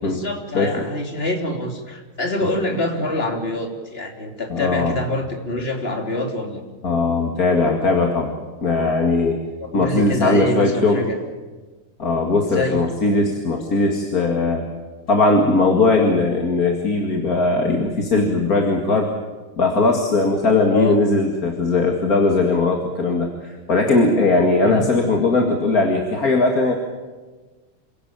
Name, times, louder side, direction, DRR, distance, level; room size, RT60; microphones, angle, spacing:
voice 1, 0.0-6.6 9.6-11.2 12.5-12.8 20.7-21.0 24.6-24.8, left 1 dB, 25° left, 3 dB, 3.3 m, -25 dB
voice 2, 0.5-0.9 4.5-5.0 6.8-8.3 8.6-9.4 9.7-11.1 12.0-14.7 15.1-19.1 19.6-26.7, left 3 dB, 40° left, 2 dB, 2.6 m, -19 dB
27.5 x 17.5 x 9.0 m, 1.3 s
omnidirectional pair, 2.4 m